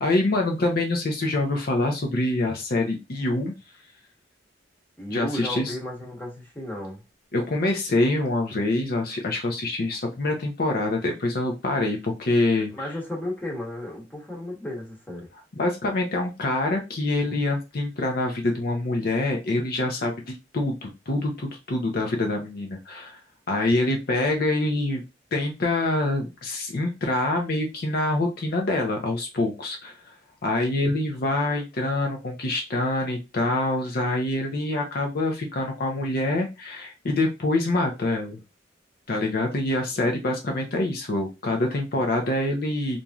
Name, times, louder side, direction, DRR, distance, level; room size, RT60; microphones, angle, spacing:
voice 1, 0.0-3.5 5.1-5.7 7.3-12.7 15.6-23.2 23.5-25.0 25.3-29.9 30.4-38.4 39.1-43.0, left 2 dB, 55° left, 0.6 m, -25 dB
voice 2, 5.0-7.0 12.7-15.3 41.9-42.0, left 1 dB, 10° left, 1.0 m, -34 dB
3.0 x 2.6 x 2.3 m
head